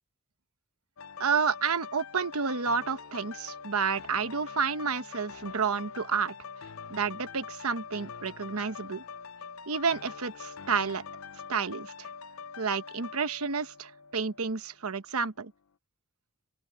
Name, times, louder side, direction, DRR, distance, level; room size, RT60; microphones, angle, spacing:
sound 1, 1.0-14.7 15.1-15.3, left 6 dB, 75° left, 0.7 m, -44 dB
voice 1, 1.2-6.3 6.9-9.0 9.7-11.0 11.5-12.1 12.6-15.5, right 5 dB, 90° right, 1.0 m, -30 dB
open air
head